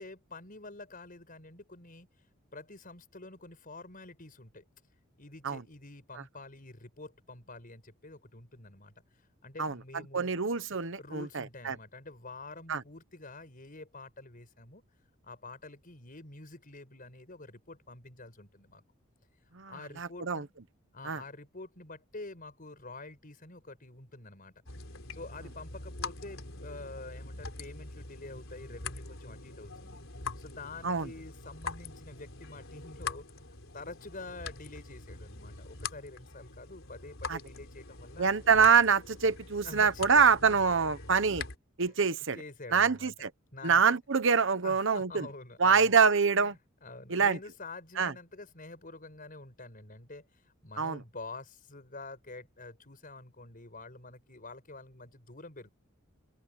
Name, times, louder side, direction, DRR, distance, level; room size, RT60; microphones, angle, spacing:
voice 1, 0.0-2.1 2.5-4.6 5.2-8.9 9.4-10.4 11.0-14.8 15.2-18.8 19.7-20.5 20.9-24.5 25.1-30.0 30.4-33.3 33.7-38.3 39.6-41.1 42.3-43.1 43.5-44.0 44.6-46.0 46.3-46.5 46.8-55.7, left 2 dB, 45° left, 5.4 m, -47 dB
voice 2, 10.1-11.8 12.7-12.8 19.5-19.7 20.0-20.4 21.0-21.2 30.8-31.1 37.3-37.4 38.2-41.4 41.8-42.4 42.7-43.3 43.6-45.3 45.6-46.5 47.1-47.4 48.0-48.1 50.8-51.0, right 5 dB, 65° right, 1.1 m, -25 dB
sound 1, 24.6-41.6, left 4 dB, 70° left, 4.3 m, -43 dB
open air
head